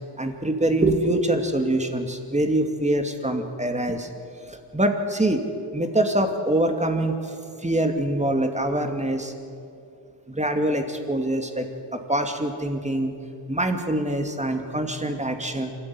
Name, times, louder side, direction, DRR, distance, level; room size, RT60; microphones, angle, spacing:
voice 1, 0.2-4.1 4.5-5.4 5.7-7.3 7.6-9.3 10.3-13.1 13.5-15.8, right 1 dB, 15° right, 5 dB, 2.5 m, -24 dB
26.5 x 13.5 x 9.8 m, 2.5 s
wide cardioid pair, 95°, 47 cm